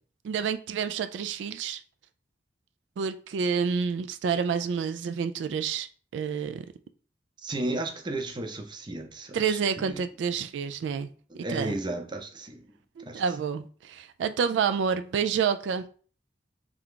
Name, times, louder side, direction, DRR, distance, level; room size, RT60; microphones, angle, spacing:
voice 1, 0.2-1.8 3.0-5.9 6.1-6.7 9.3-11.1 11.3-11.7 13.0-15.9, right 6 dB, 90° right, 0.3 m, -28 dB
voice 2, 7.4-10.0 11.3-12.6 13.0-13.2, right 2 dB, 25° right, 0.6 m, -34 dB
3.5 x 3.3 x 3.7 m
head